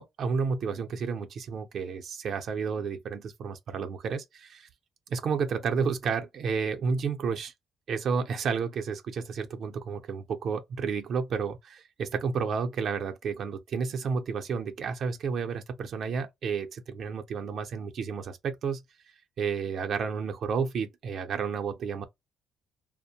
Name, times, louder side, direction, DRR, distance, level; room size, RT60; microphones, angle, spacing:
voice 1, 0.0-4.7 5.1-7.5 7.9-18.8 19.4-22.0, right 5 dB, 65° right, 0.6 m, -31 dB
2.5 x 2.1 x 2.8 m
cardioid pair, 90°, 0 cm